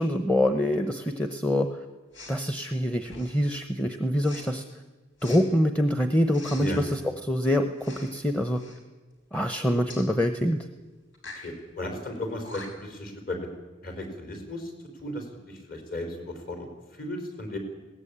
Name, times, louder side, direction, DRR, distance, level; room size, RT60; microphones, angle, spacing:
voice 1, 0.0-1.7 2.3-4.6 5.2-7.7 8.0-8.6 9.3-10.6, equal, 5° left, 7 dB, 0.9 m, -25 dB
Respiratory sounds, 2.1-2.4 3.0-3.5 4.2-4.5 5.2-5.4 6.3-7.0 7.8-8.2 8.5-8.8 9.9-10.1 11.1-11.5 12.2-12.3 12.4-12.9, left 2 dB, 75° left, 5.2 m, -44 dB
voice 2, 11.3-13.4 13.8-14.7 15.0-16.7 16.9-17.6, left 1 dB, 50° left, 3 dB, 4.8 m, -35 dB
21.0 x 18.0 x 8.8 m, 1.2 s
head